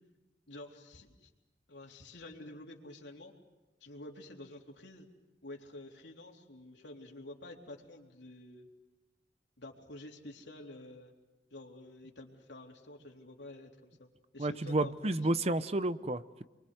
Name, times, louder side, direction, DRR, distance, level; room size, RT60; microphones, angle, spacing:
voice 1, 0.5-1.3 1.7-3.3 3.8-5.1 5.4-8.7 9.6-11.1 11.5-14.9, left 2 dB, 90° left, 1 dB, 3.6 m, -49 dB
voice 2, 14.4-16.4, right 2 dB, 35° right, 13 dB, 0.8 m, -31 dB
29.5 x 23.5 x 8.0 m, 1.1 s
head